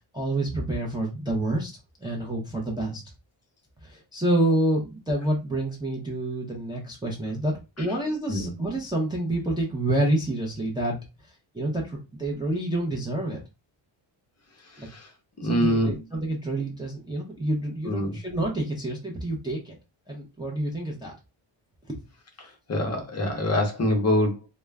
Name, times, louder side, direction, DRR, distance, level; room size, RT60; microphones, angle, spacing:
voice 1, 0.1-1.7 2.0-3.0 3.8-11.0 11.5-13.4 14.8-14.9 15.4-19.8 20.1-21.1 21.9-22.0, right 1 dB, 10° right, -2 dB, 0.5 m, -28 dB
voice 2, 14.6-15.1 15.4-16.0 17.8-18.2 22.4-24.5, left 1 dB, 35° left, 3 dB, 0.7 m, -25 dB
2.2 x 2.0 x 3.3 m, 0.26 s
wide cardioid pair, 140°, 47 cm